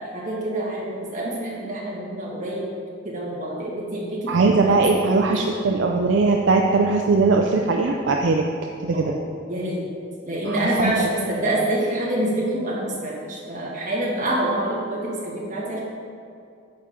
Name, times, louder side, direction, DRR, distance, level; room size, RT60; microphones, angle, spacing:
voice 1, 0.0-2.7 3.0-5.5 8.9-9.2 9.5-9.8 10.3-15.8, right 1 dB, 40° right, -5 dB, 1.8 m, -26 dB
voice 2, 4.3-9.1 10.4-11.1, right 3 dB, 70° right, 2 dB, 0.4 m, -20 dB
8.8 x 5.6 x 3.7 m, 2.4 s
head